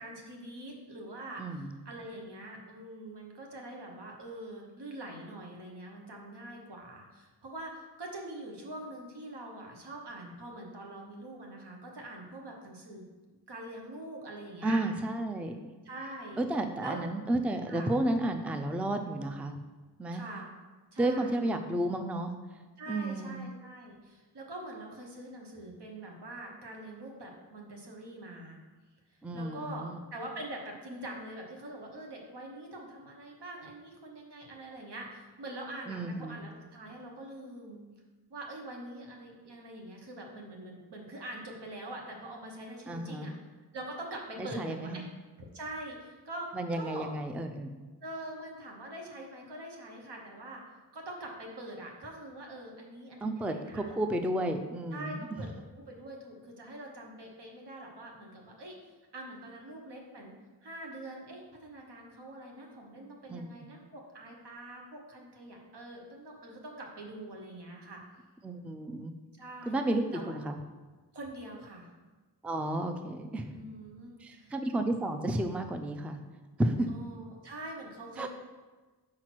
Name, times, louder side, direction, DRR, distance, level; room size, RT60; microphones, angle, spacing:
voice 1, 0.0-13.0 13.5-14.8 15.8-16.4 16.8-17.0 17.7-17.9 20.1-20.5 20.9-21.5 22.8-28.6 29.3-29.8 30.1-37.8 38.3-43.3 43.7-45.1 45.4-46.5 46.7-47.1 48.0-50.6 50.9-53.9 54.9-55.5 55.8-58.7 59.1-60.3 60.6-68.0 69.4-69.7 70.1-70.3 71.1-71.9 73.5-74.5 76.9-78.3, right 1 dB, 75° right, 0 dB, 1.2 m, -44 dB
voice 2, 1.4-1.7 14.6-15.5 16.4-19.6 20.0-20.2 21.0-22.3 22.9-23.4 29.2-30.0 35.9-36.4 42.9-43.3 44.4-45.0 46.5-47.7 53.2-55.4 63.3-63.5 68.4-69.1 69.7-70.6 72.4-73.6 74.2-76.2 76.6-76.9 78.2-78.3, right 1 dB, 5° right, 6 dB, 0.3 m, -32 dB
4.8 x 4.5 x 6.0 m, 1.3 s
wide cardioid pair, 90°, 41 cm